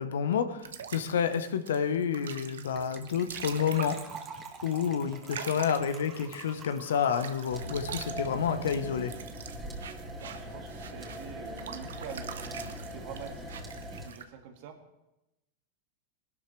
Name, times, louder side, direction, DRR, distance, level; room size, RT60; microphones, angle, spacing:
voice 1, 0.0-4.0 4.6-9.1, left 7 dB, 80° left, 10 dB, 1.0 m, -29 dB
sound 1, 0.6-6.6 7.0-14.2, right 8 dB, 80° right, 0.9 m, -44 dB
Gurgling / Trickle dribble / Fill (with liquid), 2.8-9.0 9.2-9.3 9.5-9.7 10.0-10.1, right 5 dB, 30° right, 1.9 m, -47 dB
sound 2, 7.5-14.1, equal, 10° right, 2.3 m, -41 dB
voice 2, 10.2-14.7, right 8 dB, 60° right, 4 dB, 2.1 m, -46 dB
19.5 x 12.0 x 3.3 m, 0.94 s
hypercardioid pair, 105°, 0 cm